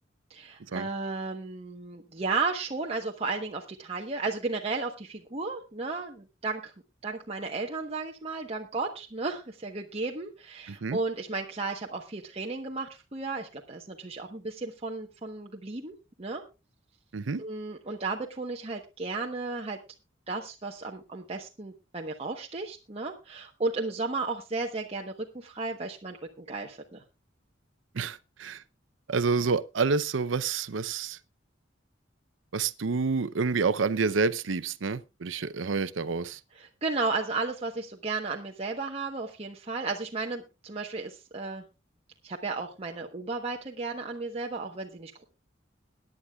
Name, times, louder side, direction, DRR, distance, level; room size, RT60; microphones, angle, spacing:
voice 1, 0.3-6.7 7.0-15.9 16.2-16.4 17.4-19.8 20.3-27.0 36.6-41.6 42.2-45.2, right 3 dB, 35° right, 1.1 m, -34 dB
voice 2, 10.7-11.0 17.1-17.4 27.9-28.6 29.1-31.2 32.5-36.4, right 4 dB, 90° right, 0.6 m, -28 dB
22.0 x 10.0 x 2.3 m
head